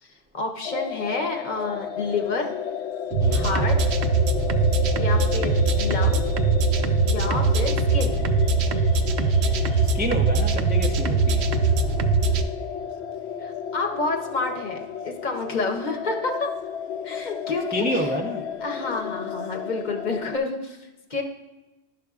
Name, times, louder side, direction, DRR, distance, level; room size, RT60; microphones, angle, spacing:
voice 1, 0.0-2.5 3.3-3.8 4.9-6.3 7.0-8.2 13.4-16.5 17.0-18.2 18.6-21.2, left 3 dB, 45° left, 3 dB, 0.9 m, -29 dB
sound 1, 0.6-20.4, left 8 dB, 85° left, 0.9 m, -33 dB
sound 2, 3.1-12.4, right 3 dB, 75° right, 0.8 m, -21 dB
voice 2, 4.4-4.9 6.8-7.0 9.9-11.4 17.7-18.4, right 1 dB, 15° right, 2 dB, 0.3 m, -29 dB
11.0 x 6.4 x 2.4 m, 1.1 s
omnidirectional pair, 1.1 m